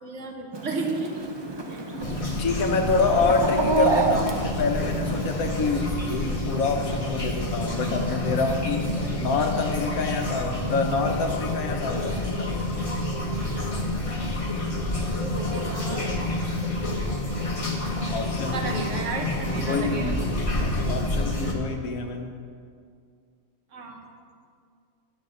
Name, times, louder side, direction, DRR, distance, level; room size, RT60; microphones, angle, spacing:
voice 1, 0.0-1.1 1.7-1.8 14.9-16.2 18.5-20.1 23.7-24.1, right 3 dB, 60° right, 2 dB, 1.4 m, -33 dB
Chicken rooster, 0.5-5.6, right 3 dB, 35° right, 0.4 m, -29 dB
sound 1, 1.1-7.0, right 2 dB, 10° left, 1.6 m, -42 dB
sound 2, 2.0-21.5, left 1 dB, 25° left, 1.1 m, -28 dB
voice 2, 2.4-8.9 9.2-12.5 18.1-18.7 19.6-22.4, left 4 dB, 85° left, 4 dB, 1.4 m, -27 dB
11.0 x 5.8 x 6.4 m, 2.2 s
omnidirectional pair, 1.5 m